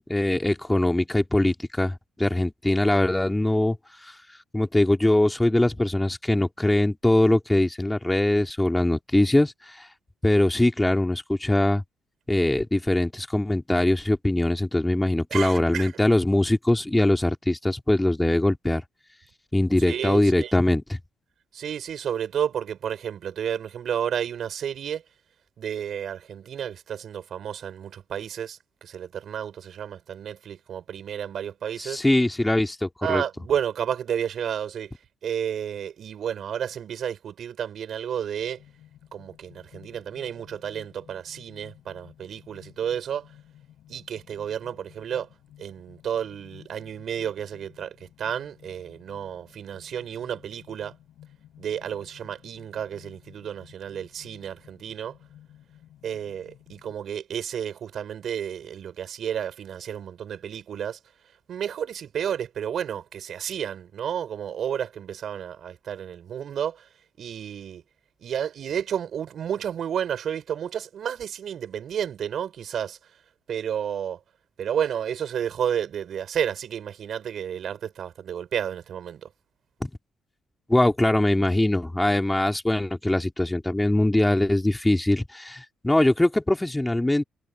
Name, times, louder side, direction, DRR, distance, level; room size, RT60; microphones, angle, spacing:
voice 1, 0.1-9.9 10.2-11.8 12.3-18.8 19.5-21.0 31.8-33.2 79.8-79.9 80.7-87.2, left 1 dB, 10° left, 2.3 m, -22 dB
voice 2, 15.3-15.9 19.8-20.5 21.5-25.0 25.6-32.0 33.0-34.9 35.2-38.6 39.1-43.3 43.9-45.3 45.6-51.0 51.6-55.1 56.0-61.0 61.5-66.9 67.2-67.8 68.2-73.0 73.5-74.2 74.6-79.3, right 9 dB, 65° right, 5.8 m, -31 dB
sound 1, 38.6-57.0, left 12 dB, 75° left, 7.7 m, -53 dB
cardioid pair, 90°, 0 cm